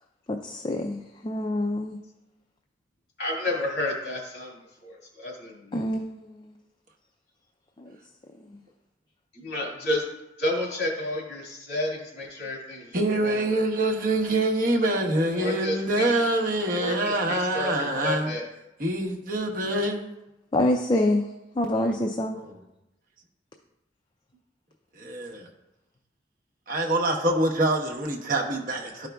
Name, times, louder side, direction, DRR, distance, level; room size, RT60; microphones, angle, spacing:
voice 1, 0.3-2.0 5.7-6.2 20.5-21.2 21.6-22.4, left 1 dB, 25° left, 3 dB, 0.4 m, -26 dB
voice 2, 3.2-5.8 9.3-10.0 10.4-13.6 15.3-16.1 16.8-18.4, left 1 dB, 65° left, -3 dB, 2.2 m, -31 dB
voice 3, 12.9-18.3 18.8-20.1 21.8-22.6 25.0-25.5 26.7-29.1, right 1 dB, 50° right, 0 dB, 1.0 m, -25 dB
12.5 x 5.0 x 2.3 m, 0.92 s
head